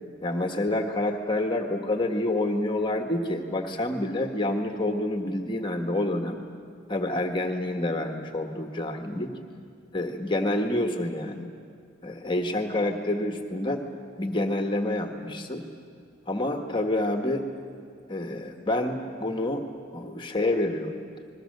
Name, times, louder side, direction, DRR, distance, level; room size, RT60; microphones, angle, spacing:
voice 1, 0.2-6.4 6.9-9.3 9.9-11.5 12.0-13.8 14.2-15.6 16.3-17.4 18.1-19.6 19.9-21.0, left 1 dB, 25° left, 4 dB, 1.4 m, -28 dB
29.5 x 21.5 x 6.7 m, 2.3 s
head